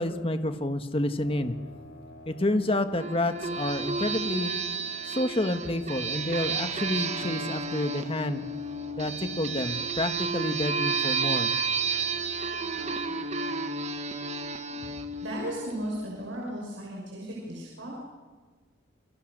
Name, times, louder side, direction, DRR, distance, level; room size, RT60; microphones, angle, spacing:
voice 1, 0.0-1.5 2.3-4.5 5.0-8.5 8.9-11.5, left 1 dB, 30° left, 8 dB, 1.5 m, -29 dB
sound 1, 1.2-13.1, left 2 dB, 80° left, 2.7 m, -48 dB
sound 2, 3.0-16.2, right 4 dB, 35° right, 1.3 m, -32 dB
voice 2, 15.2-18.0, right 1 dB, 70° right, -3 dB, 6.4 m, -35 dB
29.0 x 25.0 x 6.7 m, 1.4 s
head